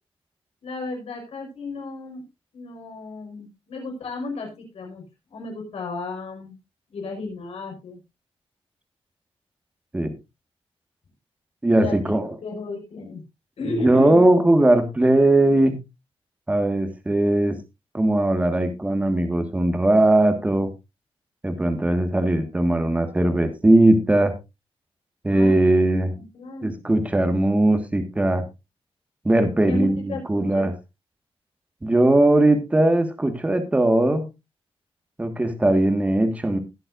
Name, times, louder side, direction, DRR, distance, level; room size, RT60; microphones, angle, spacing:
voice 1, 0.6-2.2 2.5-5.0 5.3-6.6 6.9-8.0 11.8-13.2 13.6-14.3 25.3-25.8 26.1-26.8 29.7-30.7, left 3 dB, 75° left, 1 dB, 5.2 m, -33 dB
voice 2, 11.6-12.3 13.6-15.8 16.5-17.6 17.9-20.7 21.4-24.3 25.2-26.1 26.6-28.4 29.2-30.7 31.8-34.3 35.2-36.6, right 1 dB, 15° right, 7 dB, 1.6 m, -19 dB
20.5 x 7.7 x 2.5 m, 0.24 s
wide cardioid pair, 170°, 10 cm